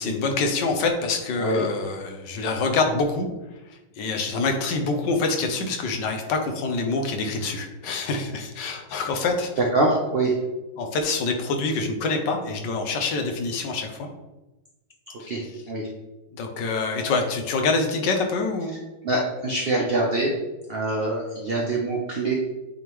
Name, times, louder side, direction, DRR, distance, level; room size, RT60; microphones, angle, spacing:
voice 1, 0.0-3.3 4.0-9.5 10.8-14.1 15.2-15.3 16.3-18.7, left 3 dB, 70° left, 4 dB, 1.4 m, -26 dB
voice 2, 9.6-10.3 15.3-15.4 15.7-15.9 19.0-20.3 20.7-22.3, right 2 dB, 50° right, -2 dB, 0.7 m, -24 dB
8.7 x 3.6 x 3.1 m, 1.1 s
omnidirectional pair, 2.0 m